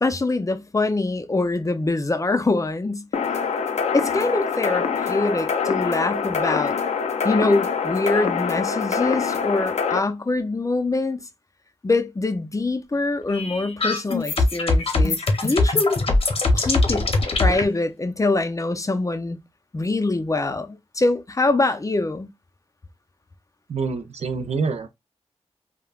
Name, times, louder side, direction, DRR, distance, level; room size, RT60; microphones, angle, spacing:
voice 1, 0.0-3.1 3.9-6.8 7.2-11.2 11.8-16.0 16.5-19.4 19.7-22.3, left 2 dB, 30° left, 0.5 m, -24 dB
sound 1, 3.1-10.0, left 6 dB, 85° left, 0.4 m, -25 dB
sound 2, 13.3-17.6, left 2 dB, 60° left, 0.8 m, -21 dB
voice 2, 23.7-24.9, right 4 dB, 75° right, 0.5 m, -26 dB
3.1 x 2.1 x 2.3 m
cardioid pair, 50°, 11 cm